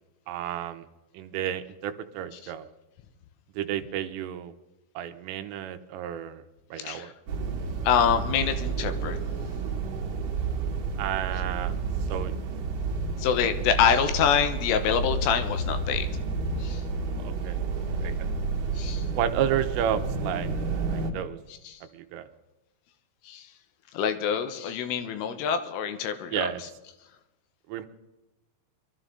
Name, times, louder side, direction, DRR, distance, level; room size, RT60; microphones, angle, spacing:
voice 1, 0.3-0.9 1.1-2.7 3.6-4.5 5.0-6.4 6.7-7.1 11.0-11.8 12.1-12.3 17.2-17.6 18.0-18.3 19.2-20.5 20.9-21.4 21.9-22.3 26.3-26.6 27.7-27.9, right 10 dB, 85° right, 9 dB, 3.3 m, -31 dB
voice 2, 6.8-7.1 7.8-9.2 13.2-16.1 16.6-16.8 18.8-19.1 21.7-21.8 23.3-23.5 23.9-26.5, left 8 dB, 80° left, 9 dB, 3.6 m, -26 dB
sound 1, 7.3-21.1, right 4 dB, 60° right, 2.4 m, -30 dB
23.5 x 13.0 x 3.9 m, 1.0 s
omnidirectional pair, 5.9 m